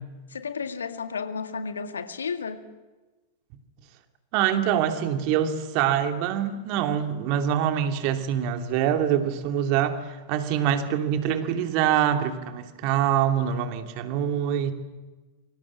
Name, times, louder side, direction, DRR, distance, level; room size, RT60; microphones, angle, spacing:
voice 1, 0.3-2.6, left 5 dB, 70° left, 2.1 m, -32 dB
voice 2, 4.3-14.7, right 9 dB, 45° right, 2.7 m, -25 dB
29.0 x 25.0 x 7.4 m
figure-of-eight pair, 90°, 0 cm